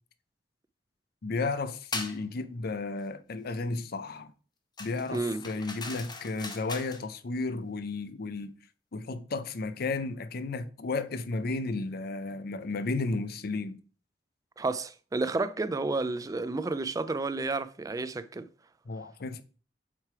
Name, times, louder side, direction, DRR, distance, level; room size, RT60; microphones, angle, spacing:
voice 1, 1.2-4.3 4.8-8.5 8.9-13.8 18.9-19.4, left 3 dB, 55° left, 0.5 m, -33 dB
sound 1, 1.9-2.2 4.8-7.0, left 3 dB, 25° left, 0.8 m, -39 dB
voice 2, 5.1-5.4 14.6-18.5, right 3 dB, 20° right, 0.3 m, -31 dB
7.4 x 3.3 x 4.7 m
head